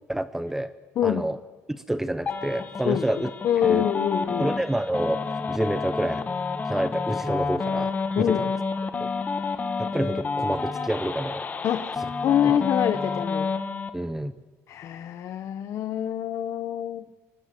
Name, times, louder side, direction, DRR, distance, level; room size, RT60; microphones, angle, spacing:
voice 1, 0.1-0.7 1.0-1.4 1.7-3.3 3.6-3.9 4.4-5.2 5.5-6.2 6.7-8.5 9.0-9.1 9.8-11.5 12.4-12.6 13.9-14.4, right 1 dB, 5° right, 12 dB, 0.8 m, -28 dB
sound 1, 2.3-13.9, left 4 dB, 30° left, 1.6 m, -29 dB
voice 2, 3.4-4.5 8.2-8.5 11.6-11.9 12.2-13.5 14.7-17.0, left 10 dB, 60° left, 10 dB, 1.0 m, -25 dB
24.5 x 19.0 x 7.7 m, 1.2 s
cardioid pair, 120°, 6 cm